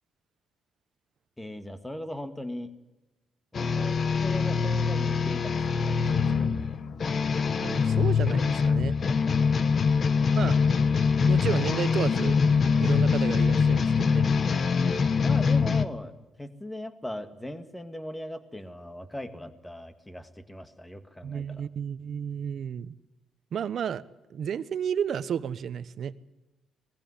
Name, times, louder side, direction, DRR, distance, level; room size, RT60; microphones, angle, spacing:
voice 1, 1.4-2.7 3.5-6.8 9.1-9.2 15.2-21.7, left 1 dB, 10° left, 10 dB, 2.0 m, -39 dB
sound 1, 3.5-15.9, left 5 dB, 45° left, 1.2 m, -24 dB
voice 2, 7.6-8.9 10.3-10.6 11.3-12.4 12.8-14.3 21.2-22.9 23.5-24.0 24.3-26.1, right 8 dB, 60° right, 15 dB, 1.0 m, -32 dB
20.0 x 15.5 x 9.9 m, 1.0 s
cardioid pair, 90°, 0 cm